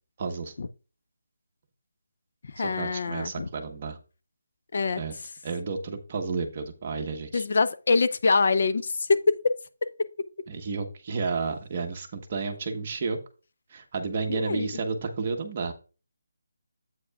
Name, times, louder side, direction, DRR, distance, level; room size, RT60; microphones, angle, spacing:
voice 1, 0.2-0.5 2.6-4.0 5.0-5.1 5.4-7.4 10.5-13.2 13.7-15.7, right 4 dB, 30° right, 1.1 m, -31 dB
voice 2, 2.5-3.5 4.7-5.0 7.3-9.5 9.8-9.9 10.2-10.3 14.3-14.7, left 4 dB, 50° left, 0.5 m, -24 dB
8.2 x 8.1 x 2.3 m
hypercardioid pair, 170°, 0 cm